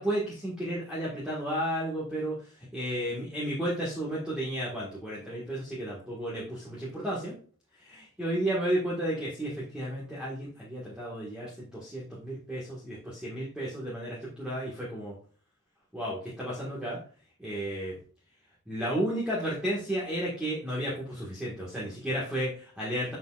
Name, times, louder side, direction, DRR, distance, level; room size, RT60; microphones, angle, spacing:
voice 1, 0.0-2.4 2.7-7.3 7.8-15.1 15.9-17.0 17.4-18.0 18.7-23.1, right 1 dB, 5° right, -7 dB, 1.6 m, -33 dB
7.0 x 6.1 x 2.4 m, 0.42 s
head